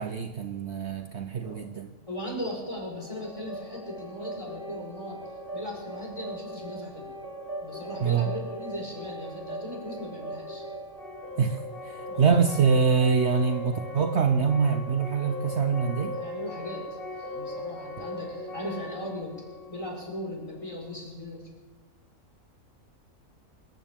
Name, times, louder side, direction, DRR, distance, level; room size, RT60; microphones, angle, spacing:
voice 1, 0.0-1.9 8.0-8.3 11.4-11.6 11.9-16.2, right 6 dB, 55° right, 6 dB, 1.0 m, -24 dB
voice 2, 2.1-5.2 5.5-7.1 7.6-10.6 12.1-12.4 16.1-19.4 19.7-21.5, left 1 dB, 25° left, -3 dB, 4.7 m, -38 dB
sound 1, 3.0-20.8, equal, 40° left, 2.4 m, -39 dB
25.5 x 14.5 x 3.6 m, 1.2 s
omnidirectional pair, 1.4 m